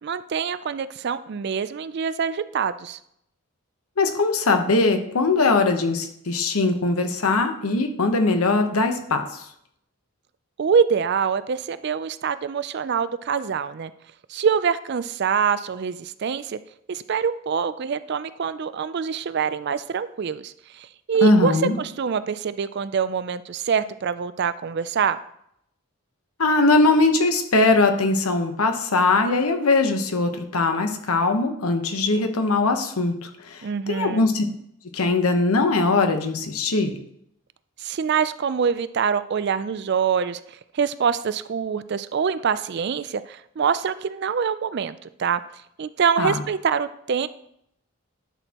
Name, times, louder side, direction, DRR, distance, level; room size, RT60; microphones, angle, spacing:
voice 1, 0.0-3.0 10.6-13.9 14.3-16.6 16.9-25.2 33.6-34.3 37.8-45.4 45.8-47.3, right 6 dB, 50° right, 14 dB, 0.3 m, -25 dB
voice 2, 4.0-9.4 21.2-21.8 26.4-34.4 34.9-37.0 46.2-46.4, left 3 dB, 80° left, 6 dB, 1.0 m, -21 dB
11.0 x 6.3 x 2.9 m, 0.72 s
head